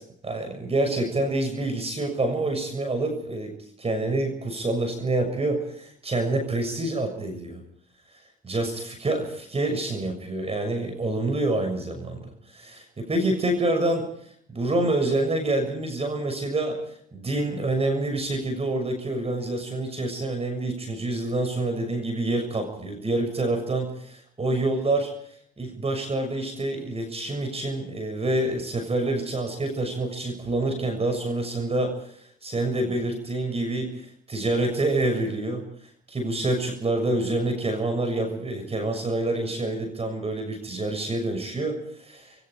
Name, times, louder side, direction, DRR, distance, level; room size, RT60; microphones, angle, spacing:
voice 1, 0.2-7.6 8.4-14.1 14.5-16.8 17.1-23.9 24.4-25.1 25.6-31.9 32.4-35.6 36.1-42.3, right 2 dB, 30° right, 5 dB, 6.7 m, -27 dB
27.0 x 23.0 x 5.0 m, 0.64 s
hypercardioid pair, 65°, 21 cm